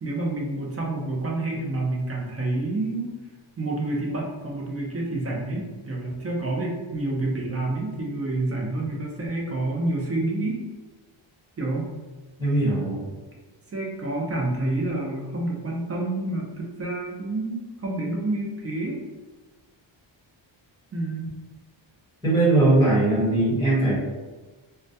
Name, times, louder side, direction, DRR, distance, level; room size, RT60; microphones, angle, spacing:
voice 1, 0.0-3.1 3.6-10.6 11.6-11.9 13.7-19.0 20.9-21.4, right 2 dB, 30° right, -1 dB, 0.5 m, -28 dB
voice 2, 12.4-13.0 22.2-23.9, right 2 dB, 10° left, -8 dB, 1.1 m, -20 dB
2.1 x 2.1 x 2.7 m, 1.2 s
wide cardioid pair, 105°, 48 cm